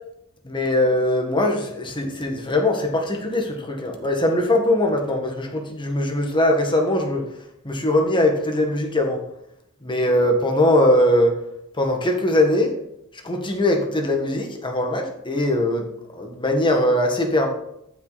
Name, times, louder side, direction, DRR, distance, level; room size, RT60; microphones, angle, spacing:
voice 1, 0.4-7.3 7.6-9.2 9.8-11.4 11.7-12.8 13.2-15.9 16.1-17.5, left 1 dB, 20° left, 3 dB, 1.7 m, -21 dB
13.0 x 6.2 x 4.2 m, 0.78 s
head